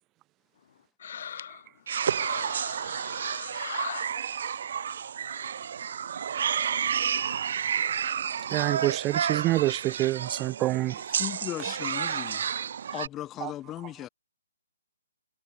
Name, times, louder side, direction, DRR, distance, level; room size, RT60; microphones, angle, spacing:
voice 1, 1.0-1.6 2.2-4.1, left 8 dB, 50° left, 1.7 m, -39 dB
sound 1, 1.9-13.1, right 8 dB, 55° right, 4.1 m, -31 dB
voice 2, 8.5-11.0 13.4-13.5, right 17 dB, 20° right, 0.8 m, -27 dB
voice 3, 11.1-12.5 12.9-14.1, left 13 dB, 15° left, 2.7 m, -37 dB
figure-of-eight pair, 145°, 0 cm